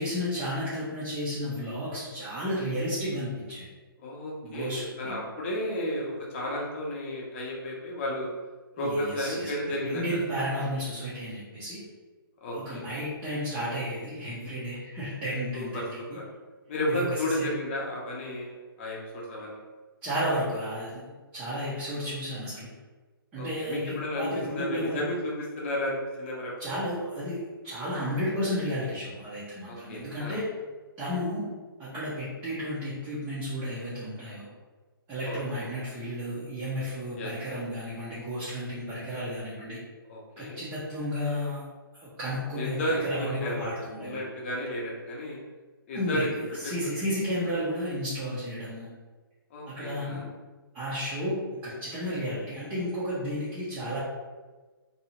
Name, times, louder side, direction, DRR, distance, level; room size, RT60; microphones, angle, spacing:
voice 1, 0.0-3.7 4.4-5.2 8.8-9.5 9.8-11.8 12.6-15.8 16.1-16.2 16.9-17.5 20.0-22.7 23.3-25.0 26.6-30.4 31.0-31.4 31.8-34.5 35.1-39.8 40.4-41.6 41.9-44.2 45.9-48.9 49.7-50.2 50.7-54.0, equal, 10° right, -11 dB, 0.5 m, -32 dB
voice 2, 4.0-8.3 8.8-10.2 12.4-12.8 15.5-16.2 16.7-19.6 23.4-26.5 29.6-30.4 35.2-35.7 37.2-37.6 40.1-40.6 42.5-43.7 44.0-45.4 45.9-46.3 46.6-46.7 49.5-50.2, left 1 dB, 30° left, -3 dB, 0.7 m, -33 dB
2.7 x 2.3 x 2.9 m, 1.3 s
hypercardioid pair, 160°, 13 cm